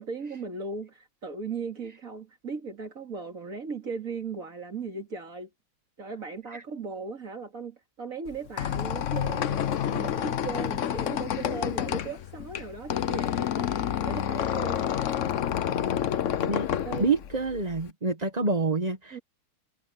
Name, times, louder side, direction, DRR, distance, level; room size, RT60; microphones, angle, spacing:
voice 1, 0.0-5.5 6.0-13.7 14.0-14.9 16.8-17.1 19.1-19.2, right 4 dB, 40° right, 2.7 m, -37 dB
Squeak, 8.3-17.9, left 9 dB, 70° left, 0.7 m, -29 dB
voice 2, 17.0-19.2, right 3 dB, 25° right, 1.2 m, -27 dB
omnidirectional pair, 2.3 m